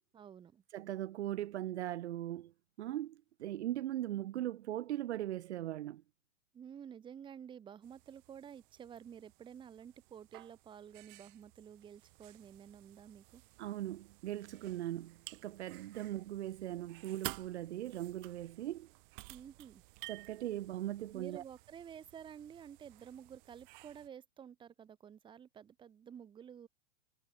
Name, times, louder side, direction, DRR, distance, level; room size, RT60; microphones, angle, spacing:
voice 1, 0.1-0.6 6.5-13.4 19.3-19.8 21.1-26.7, right 8 dB, 10° right, 1.0 m, -51 dB
voice 2, 0.7-2.5 2.8-6.0 13.6-18.9 20.1-21.4, right 13 dB, 60° right, 0.7 m, -39 dB
sound 1, 7.8-24.1, right 25 dB, 40° right, 1.9 m, -53 dB
hypercardioid pair, 120°, 38 cm